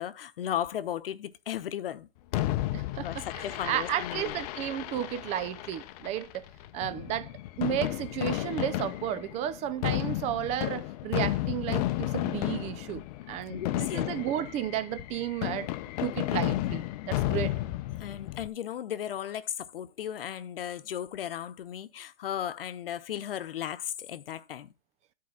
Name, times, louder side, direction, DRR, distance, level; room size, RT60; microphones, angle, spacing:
voice 1, 0.0-2.1 3.0-4.3 13.5-14.1 18.0-24.7, left 10 dB, 70° left, 1.0 m, -35 dB
Fireworks, 2.3-18.5, left 15 dB, 40° left, 0.7 m, -33 dB
voice 2, 2.7-6.4 6.7-7.3 7.6-15.7 16.0-17.6, right 11 dB, 25° right, 0.4 m, -33 dB
9.6 x 4.6 x 7.0 m
hypercardioid pair, 125°, 29 cm